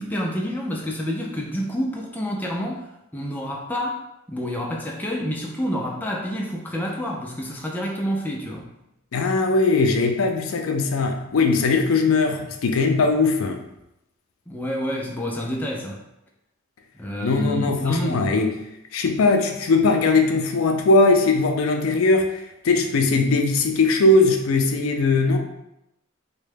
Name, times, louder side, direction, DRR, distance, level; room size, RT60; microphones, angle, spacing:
voice 1, 0.0-2.9 3.1-4.0 4.3-8.7 14.5-16.0 17.0-18.3, equal, 10° left, -2 dB, 0.3 m, -28 dB
voice 2, 9.1-13.6 17.2-18.5 18.9-25.4, left 3 dB, 85° left, 4 dB, 0.4 m, -20 dB
3.6 x 2.2 x 3.4 m, 0.87 s
head